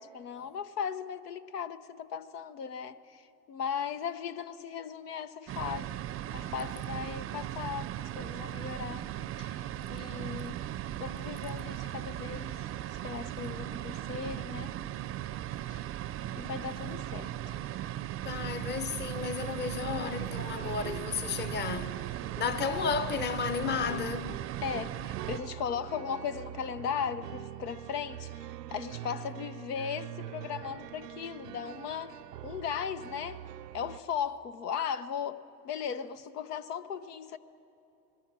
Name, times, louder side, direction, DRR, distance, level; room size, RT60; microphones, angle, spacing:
voice 1, 0.1-6.0 6.3-9.1 9.4-10.6 11.0-12.6 12.9-14.7 15.7-15.9 16.4-17.5 24.6-32.2 32.4-33.4 33.7-37.4, left 7 dB, 80° left, 1.0 m, -37 dB
sound 1, 5.5-25.4, right 12 dB, 30° right, 0.6 m, -38 dB
voice 2, 18.2-24.4, left 6 dB, 20° left, 0.8 m, -33 dB
sound 2, 19.4-34.0, right 13 dB, 85° right, 0.6 m, -44 dB
27.0 x 20.5 x 6.2 m
hypercardioid pair, 90°, 47 cm